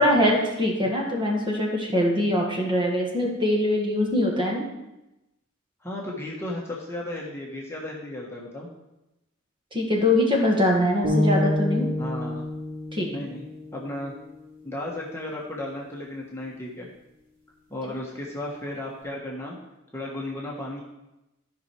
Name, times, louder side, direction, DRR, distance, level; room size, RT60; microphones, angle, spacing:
voice 1, 0.0-4.7 9.7-11.9 12.9-13.1, left 1 dB, 25° right, -1 dB, 1.9 m, -23 dB
voice 2, 5.8-8.7 12.0-12.4 13.1-13.5 13.7-14.1 14.6-16.9 17.7-19.6 19.9-20.8, left 1 dB, 15° left, -4 dB, 1.3 m, -34 dB
sound 1, 11.0-15.2, left 1 dB, 40° right, 4.0 m, -29 dB
13.5 x 5.6 x 4.5 m, 0.94 s
head